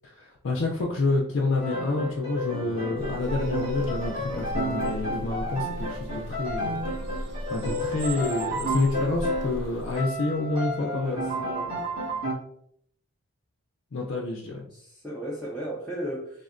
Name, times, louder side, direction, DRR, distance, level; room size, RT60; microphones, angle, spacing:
voice 1, 0.0-6.8 7.5-11.2 13.9-14.6, left 3 dB, 60° left, -1 dB, 0.4 m, -28 dB
Piano, 1.6-9.7 9.9-12.3, equal, 80° right, 1.4 m, -32 dB
sound 1, 3.0-10.0, equal, 60° right, 0.5 m, -37 dB
voice 2, 10.8-11.9 14.7-16.4, equal, 5° left, -7 dB, 0.5 m, -35 dB
3.4 x 2.1 x 2.4 m, 0.68 s
head